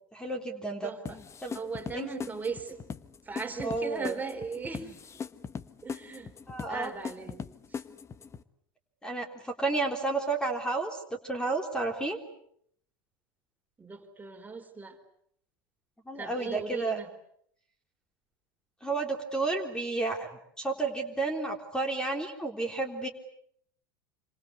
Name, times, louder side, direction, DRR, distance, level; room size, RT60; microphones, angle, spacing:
voice 1, 0.1-0.9 1.4-1.6 1.9-2.1 3.6-4.2 6.5-6.9 9.0-12.2 16.1-17.0 18.8-20.3 20.6-23.1, right 3 dB, 5° left, 5 dB, 3.5 m, -31 dB
voice 2, 0.8-1.2 1.5-2.8 3.2-5.0 5.8-6.3 6.7-7.4 7.7-7.8 13.8-15.0 16.1-17.1, right 4 dB, 15° right, 6 dB, 4.1 m, -38 dB
sound 1, 1.1-8.4, left 6 dB, 25° left, 1.4 m, -40 dB
27.5 x 26.0 x 8.2 m, 0.69 s
hypercardioid pair, 95°, 11 cm